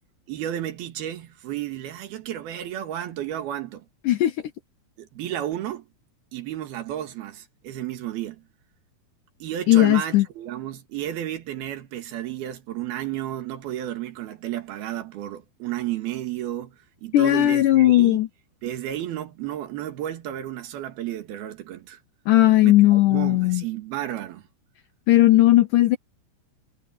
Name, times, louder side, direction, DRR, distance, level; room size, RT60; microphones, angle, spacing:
voice 1, 0.3-3.9 5.0-5.9 6.3-8.4 9.4-18.2 18.6-22.0 22.6-24.5, right 12 dB, 70° right, 3.5 m, -32 dB
voice 2, 9.7-10.3 17.1-18.3 22.3-23.6 25.1-26.0, left 15 dB, 85° left, 1.8 m, -17 dB
omnidirectional pair, 4.7 m